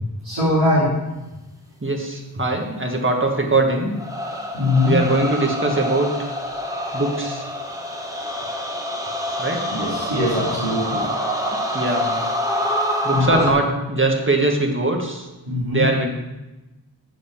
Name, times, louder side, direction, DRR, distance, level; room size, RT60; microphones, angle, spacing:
voice 1, 0.2-0.9 4.5-5.0 9.7-11.0 13.1-13.4 15.5-15.8, left 2 dB, 85° right, -10 dB, 3.1 m, -21 dB
voice 2, 1.8-4.0 4.9-6.3 6.9-7.5 9.4-9.6 11.7-12.2 13.0-15.3 15.7-16.1, right 2 dB, 25° right, 2 dB, 1.6 m, -21 dB
sound 1, 3.9-13.5, equal, 10° right, 1.1 m, -26 dB
7.9 x 5.2 x 7.3 m, 1.1 s
wide cardioid pair, 70°, 44 cm